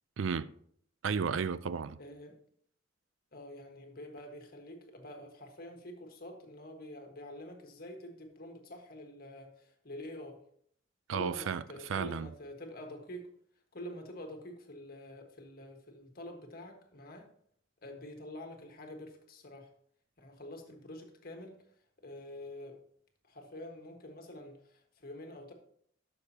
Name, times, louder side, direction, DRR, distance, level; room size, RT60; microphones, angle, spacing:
voice 1, 0.2-0.5 1.0-2.0 11.1-11.6 11.9-12.3, right 6 dB, 80° right, 0.4 m, -33 dB
voice 2, 2.0-2.3 3.3-10.4 11.1-13.3 13.7-17.2 17.8-19.7 20.2-21.6 22.0-22.8 23.3-25.5, left 1 dB, 50° left, 1.6 m, -47 dB
12.5 x 6.6 x 2.9 m
head